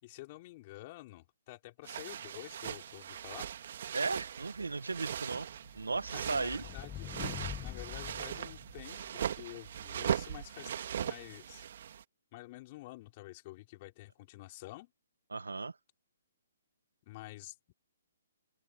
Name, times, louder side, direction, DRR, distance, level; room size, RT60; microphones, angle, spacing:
voice 1, 0.0-3.5 6.1-7.1 7.6-11.7 12.3-14.9 17.1-17.7, left 19 dB, 35° left, 4.7 m, -49 dB
sound 1, 1.8-12.0, right 9 dB, 55° right, 2.0 m, -39 dB
voice 2, 3.9-5.5 5.7-6.6 15.3-15.7, right 3 dB, 90° right, 1.8 m, -35 dB
sound 2, 5.4-9.3, left 13 dB, 20° left, 1.1 m, -45 dB
open air
hypercardioid pair, 140°, 0 cm